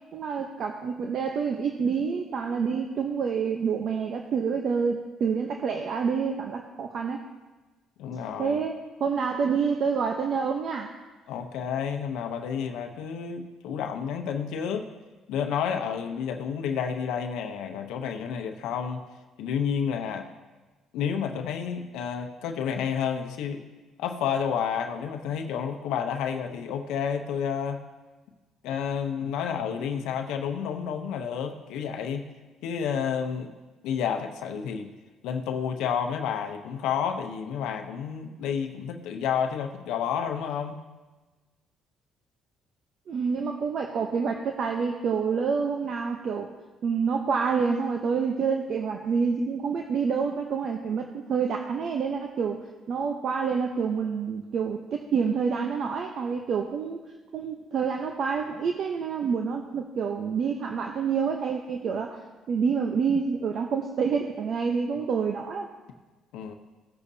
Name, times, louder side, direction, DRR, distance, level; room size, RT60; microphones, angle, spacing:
voice 1, 0.1-7.2 8.4-10.9 43.1-46.5 46.8-52.6 52.9-57.1 57.3-62.2 62.5-65.7, right 6 dB, 60° right, 3 dB, 0.8 m, -27 dB
voice 2, 8.0-8.6 11.3-14.9 15.3-19.1 19.4-20.3 20.9-23.6 24.0-27.8 28.6-32.3 32.6-33.5 33.8-34.9 35.2-40.7 66.3-66.5, left 7 dB, 85° left, 5 dB, 0.8 m, -30 dB
16.5 x 8.2 x 2.8 m, 1.2 s
cardioid pair, 90°, 0 cm